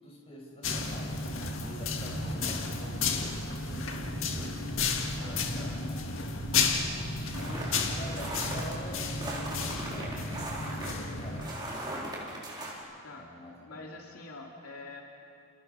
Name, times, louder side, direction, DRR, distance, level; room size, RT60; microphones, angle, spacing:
voice 1, 0.0-1.2 1.6-4.6 5.1-6.0 7.5-10.4 10.8-12.2 13.2-13.8, left 1 dB, 25° left, -3 dB, 6.6 m, -45 dB
sound 1, 0.6-11.5, left 4 dB, 60° left, 2.0 m, -32 dB
voice 2, 5.2-6.7 7.3-7.8 13.0-13.3 13.6-15.0, left 2 dB, 85° left, 0 dB, 2.6 m, -46 dB
sound 2, 7.3-8.7 9.2-12.8, right 1 dB, 20° right, 4.5 m, -39 dB
29.5 x 29.0 x 5.6 m, 2.5 s
head